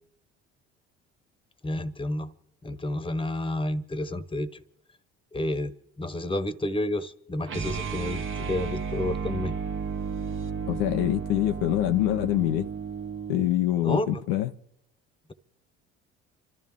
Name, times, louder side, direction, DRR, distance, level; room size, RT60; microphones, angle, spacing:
voice 1, 1.6-2.3 2.6-4.6 5.3-9.5 13.8-14.2, left 1 dB, 15° left, 1.2 m, -30 dB
sound 1, 7.4-13.5, right 6 dB, 40° right, 1.2 m, -33 dB
voice 2, 10.7-12.7 13.3-14.5, left 14 dB, 75° left, 0.8 m, -25 dB
28.5 x 13.0 x 3.7 m
hypercardioid pair, 65°, 32 cm